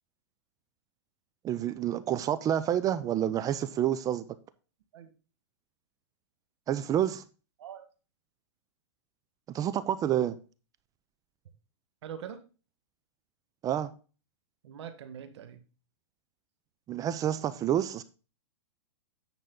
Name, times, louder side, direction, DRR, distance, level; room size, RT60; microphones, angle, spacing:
voice 1, 1.4-4.2 6.7-7.2 9.5-10.4 13.6-13.9 16.9-18.0, right 10 dB, 25° right, 0.6 m, -28 dB
voice 2, 12.0-12.4 14.6-15.6, right 9 dB, 65° right, 1.5 m, -43 dB
9.5 x 5.8 x 3.9 m
hypercardioid pair, 130°, 15 cm